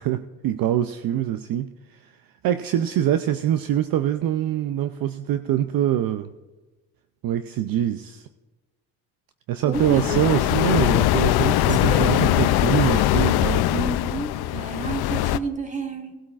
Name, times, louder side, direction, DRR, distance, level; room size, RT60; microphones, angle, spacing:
voice 1, 0.0-2.2 2.4-6.3 7.2-8.3 9.5-13.9, right 11 dB, 55° right, 10 dB, 0.5 m, -24 dB
sound 1, 9.7-15.4, left 14 dB, 60° left, 0.5 m, -21 dB
voice 2, 9.7-10.2 11.6-13.3 13.7-16.2, right 3 dB, 15° right, 5 dB, 1.3 m, -31 dB
18.5 x 12.5 x 2.4 m, 1.2 s
cardioid pair, 115°, 43 cm